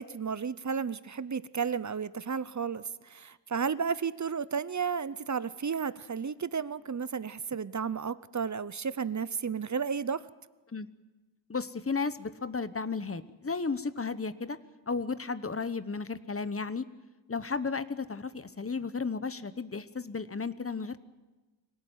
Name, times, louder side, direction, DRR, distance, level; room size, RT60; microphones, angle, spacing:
voice 1, 0.0-10.3, right 6 dB, 40° right, 17 dB, 0.7 m, -33 dB
voice 2, 11.5-14.6 14.9-16.9 17.3-21.0, left 4 dB, 30° left, 14 dB, 1.0 m, -34 dB
24.0 x 18.0 x 9.1 m, 1.2 s
wide cardioid pair, 100°, 45 cm